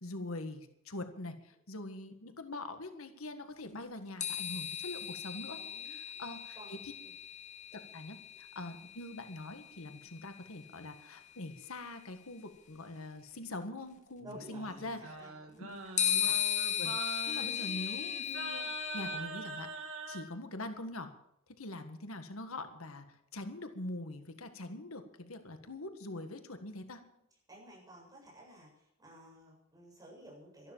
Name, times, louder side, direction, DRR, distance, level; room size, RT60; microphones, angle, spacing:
voice 1, 0.0-5.6 5.8-6.9 7.9-15.1 15.6-15.7 16.3-16.4 16.8-21.1 21.5-27.0, left 2 dB, 85° left, 7 dB, 1.6 m, -43 dB
sound 1, 4.2-9.8 11.1-11.2 16.0-19.2, left 9 dB, 35° left, 1.9 m, -36 dB
voice 2, 5.5-6.3 6.6-7.1 14.2-15.6 27.5-30.7, right 1 dB, 20° right, -4 dB, 7.5 m, -54 dB
Singing, 14.2-20.3, right 4 dB, 85° right, 2.4 m, -44 dB
13.0 x 12.0 x 7.3 m, 0.78 s
head